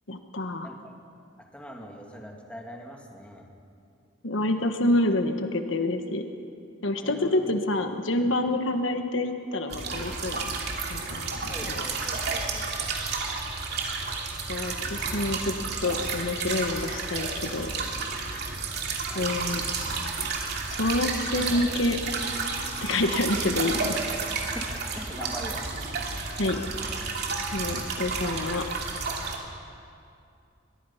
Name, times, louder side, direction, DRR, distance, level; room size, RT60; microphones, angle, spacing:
voice 1, 0.1-0.7 4.2-6.2 6.8-10.6 10.9-11.8 14.5-15.5 15.8-17.7 19.1-19.6 20.7-22.0 22.8-24.0 26.4-26.6 27.5-28.6, left 2 dB, 80° left, 6 dB, 1.3 m, -27 dB
voice 2, 1.5-3.5 7.0-7.5 11.4-12.9 19.1-19.3 24.5-25.6, equal, 5° left, 0 dB, 2.4 m, -42 dB
sound 1, 9.7-29.4, right 4 dB, 55° right, 2.8 m, -31 dB
22.5 x 22.0 x 5.7 m, 2.5 s
head